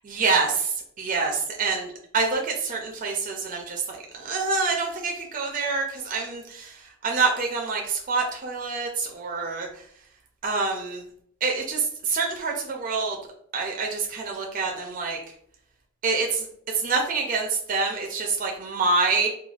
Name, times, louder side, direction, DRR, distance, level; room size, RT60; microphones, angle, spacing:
voice 1, 0.1-1.3 1.6-1.8 2.1-9.7 10.4-11.0 11.4-13.2 13.5-15.2 16.0-16.5 16.7-19.3, right 4 dB, 40° right, 1 dB, 0.4 m, -26 dB
3.2 x 2.2 x 2.4 m, 0.67 s
head